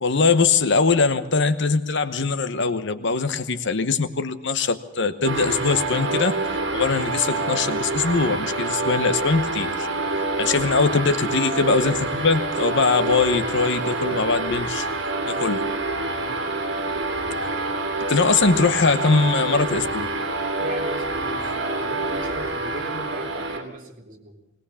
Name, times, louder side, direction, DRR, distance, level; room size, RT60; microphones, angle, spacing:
voice 1, 0.0-6.4 6.7-9.9 10.4-14.9 15.3-15.6 18.1-20.1, left 4 dB, 60° left, 11 dB, 1.0 m, -21 dB
sound 1, 5.2-23.6, right 2 dB, 65° right, 2.9 m, -27 dB
voice 2, 20.6-24.4, right 2 dB, 40° right, 1 dB, 3.0 m, -37 dB
20.0 x 19.0 x 7.1 m, 0.89 s
head